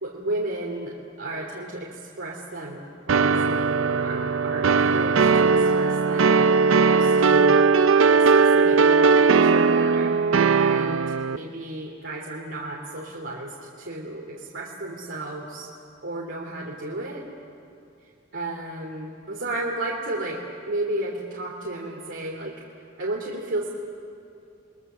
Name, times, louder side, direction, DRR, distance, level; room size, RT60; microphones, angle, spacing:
voice 1, 0.0-7.6 8.1-10.2 10.6-11.0 11.3-15.7 16.0-17.2 18.3-22.5 23.0-23.7, right 2 dB, 70° right, -3 dB, 2.9 m, -33 dB
sound 1, 3.1-11.4, right 5 dB, 85° right, 0.5 m, -19 dB
30.0 x 21.0 x 6.8 m, 2.6 s
head